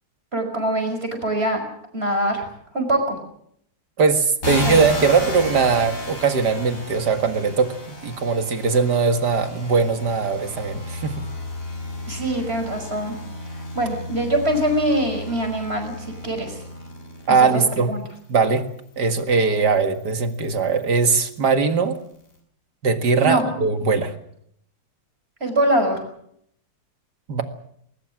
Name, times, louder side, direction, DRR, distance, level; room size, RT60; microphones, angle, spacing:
voice 1, 0.3-1.6 1.9-2.4 2.7-3.2 4.6-4.8 12.1-13.2 13.5-16.6 17.3-18.0 23.2-23.4 25.4-26.0, right 1 dB, 30° right, 5 dB, 6.0 m, -23 dB
voice 2, 4.0-11.2 17.3-17.9 18.3-18.6 19.0-22.0 22.8-24.2 27.3-27.4, right 5 dB, 55° right, 8 dB, 2.3 m, -20 dB
sound 1, 4.4-17.8 18.5-21.4, left 1 dB, 40° left, 5.8 m, -33 dB
21.0 x 20.0 x 7.6 m, 0.69 s
omnidirectional pair, 2.2 m